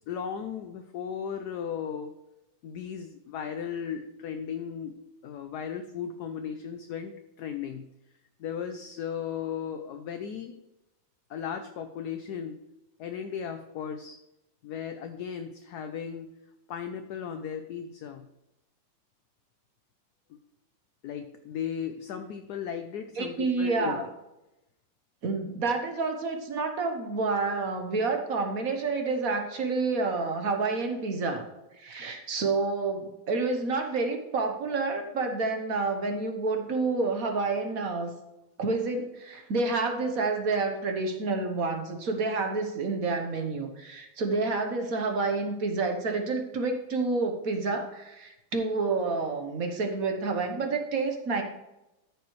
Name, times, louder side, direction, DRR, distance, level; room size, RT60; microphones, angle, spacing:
voice 1, 0.1-2.1 2.6-7.9 8.4-10.5 11.3-12.6 13.0-14.2 14.6-16.4 16.7-18.3 20.3-20.4 21.0-24.0 40.0-40.1, left 8 dB, 65° left, 7 dB, 1.1 m, -36 dB
voice 2, 23.2-24.0 25.2-31.5 31.8-38.1 38.6-51.4, right 3 dB, 50° right, 5 dB, 1.4 m, -29 dB
13.0 x 6.7 x 3.2 m, 0.93 s
omnidirectional pair, 2.1 m